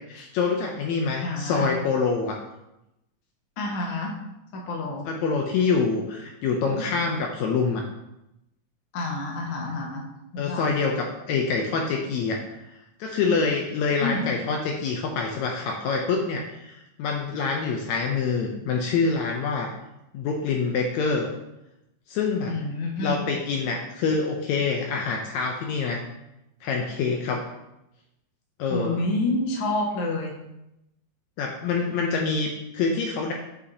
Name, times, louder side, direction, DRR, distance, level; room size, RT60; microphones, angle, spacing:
voice 1, 0.1-2.4 5.0-7.8 10.4-12.4 13.0-19.7 20.1-21.3 22.1-22.5 23.0-26.0 26.6-27.4 28.6-29.0 31.4-33.3, left 4 dB, 80° left, 1 dB, 1.8 m, -26 dB
voice 2, 1.2-1.7 3.6-4.1 4.5-5.1 8.9-10.0 10.3-10.7 14.0-14.3 22.5-23.2 28.7-30.3, left 2 dB, 60° left, -1 dB, 1.4 m, -28 dB
8.1 x 5.0 x 2.8 m, 0.89 s
omnidirectional pair, 3.5 m